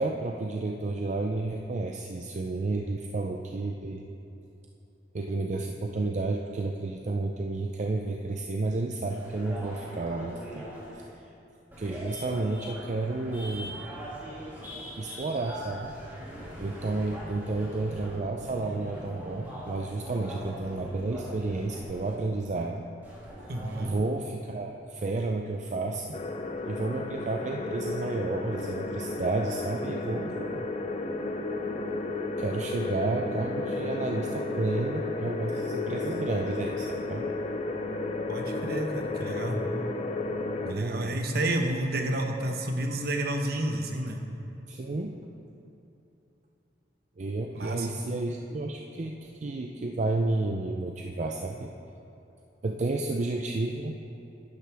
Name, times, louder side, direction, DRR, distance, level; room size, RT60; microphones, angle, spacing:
voice 1, 0.0-4.0 5.1-10.7 10.9-11.3 11.8-13.8 15.0-15.9 16.6-22.8 23.8-26.2 26.6-30.6 32.4-37.3 40.6-41.2 44.7-45.1 47.2-51.7 52.6-54.0, right 2 dB, 40° right, 2 dB, 0.4 m, -31 dB
sound 1, 9.1-10.9 11.7-18.2 18.4-22.2 23.0-23.9, equal, 10° right, 2.3 m, -41 dB
voice 2, 23.5-23.9 38.3-39.6 40.7-44.2 47.5-47.9, right 1 dB, 60° right, 4 dB, 1.0 m, -30 dB
sound 2, 26.1-40.7, left 2 dB, 40° left, 0.6 m, -33 dB
11.0 x 10.5 x 3.4 m, 2.9 s
head